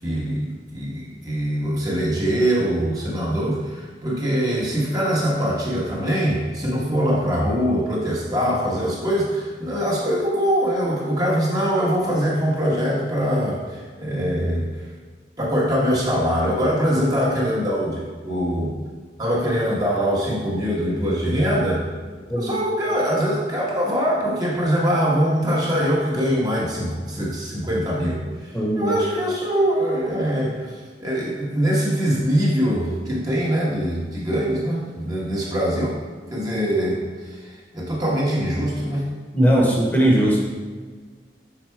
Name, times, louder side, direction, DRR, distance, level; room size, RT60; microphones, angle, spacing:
voice 1, 0.0-14.7 15.4-18.7 19.2-21.9 22.3-36.0 36.3-39.1, equal, 20° right, -5 dB, 1.2 m, -23 dB
voice 2, 28.5-28.9 39.3-40.4, right 1 dB, 10° left, -4 dB, 1.2 m, -18 dB
5.8 x 4.0 x 4.6 m, 1.5 s
head